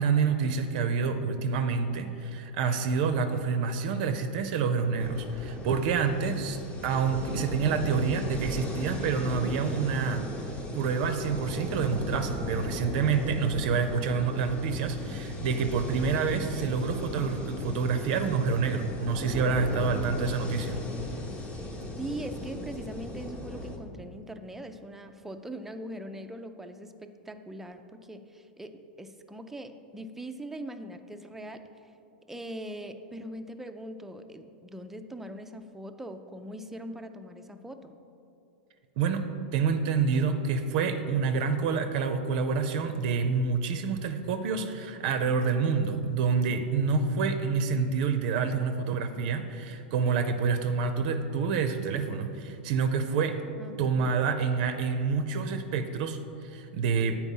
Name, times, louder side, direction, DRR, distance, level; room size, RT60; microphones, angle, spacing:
voice 1, 0.0-10.3 10.7-20.8 39.0-39.3 39.5-53.4 53.8-57.2, right 5 dB, 55° right, 8 dB, 0.5 m, -28 dB
sound 1, 5.0-23.8, left 1 dB, 20° left, 0.9 m, -37 dB
voice 2, 22.0-31.9 32.3-38.0 53.6-54.1, right 1 dB, 5° right, 7 dB, 0.4 m, -41 dB
8.2 x 4.6 x 5.4 m, 2.7 s
hypercardioid pair, 130°, 6 cm